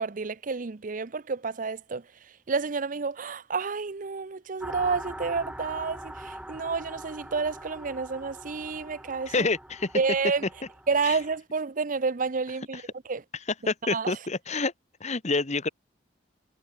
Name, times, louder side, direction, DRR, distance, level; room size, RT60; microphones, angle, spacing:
voice 1, 0.0-2.0 2.5-9.5 9.9-10.5 10.9-12.8 13.1-13.2 13.9-14.1, right 4 dB, 45° right, 0.7 m, -29 dB
sound 1, 4.6-11.4, right 1 dB, 5° right, 5.1 m, -42 dB
voice 2, 9.3-9.9 11.0-11.2 12.7-12.8 13.7-14.7 15.0-15.7, left 3 dB, 40° left, 1.4 m, -28 dB
head